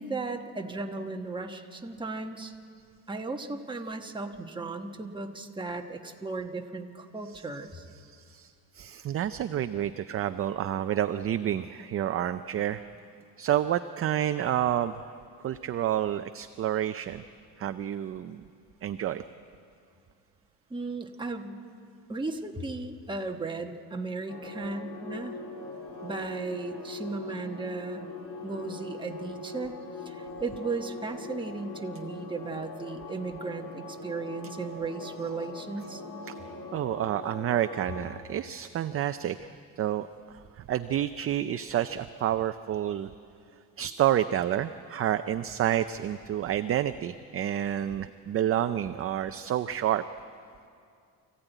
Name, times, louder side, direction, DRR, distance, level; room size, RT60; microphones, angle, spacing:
voice 1, 0.0-2.5 3.1-7.9 20.7-21.6 22.1-25.4 26.0-28.1 28.4-29.7 30.0-36.0, right 3 dB, 10° right, 3 dB, 1.2 m, -36 dB
voice 2, 8.0-12.8 13.4-15.1 15.4-17.2 17.6-18.5 18.8-19.2 36.7-39.5 39.8-43.1 43.8-50.0, right 11 dB, 35° right, 10 dB, 0.4 m, -29 dB
sound 1, 24.3-38.1, left 3 dB, 40° left, 3.4 m, -41 dB
24.0 x 15.5 x 9.1 m, 2.4 s
cardioid pair, 150°, 40 cm